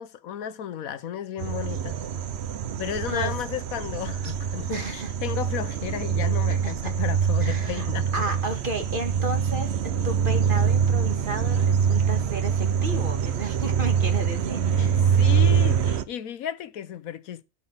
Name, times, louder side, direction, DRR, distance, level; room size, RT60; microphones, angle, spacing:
voice 1, 0.0-2.0 2.8-8.1 14.8-17.4, left 9 dB, 65° left, 1.1 m, -33 dB
sound 1, 1.4-16.0, right 7 dB, 55° right, 0.8 m, -24 dB
voice 2, 4.7-5.1 6.5-6.7 7.4-15.0, right 1 dB, 35° right, 1.9 m, -33 dB
12.0 x 6.3 x 5.4 m
omnidirectional pair, 1.6 m